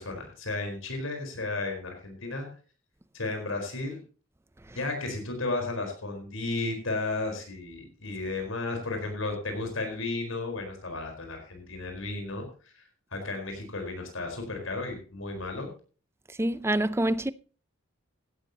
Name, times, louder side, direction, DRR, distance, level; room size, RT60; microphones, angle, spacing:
voice 1, 0.0-2.5 3.1-4.0 4.7-12.5 12.7-15.7, left 2 dB, 75° left, 4.6 m, -33 dB
voice 2, 16.4-17.3, right 1 dB, 10° right, 0.5 m, -26 dB
16.5 x 13.0 x 2.9 m
head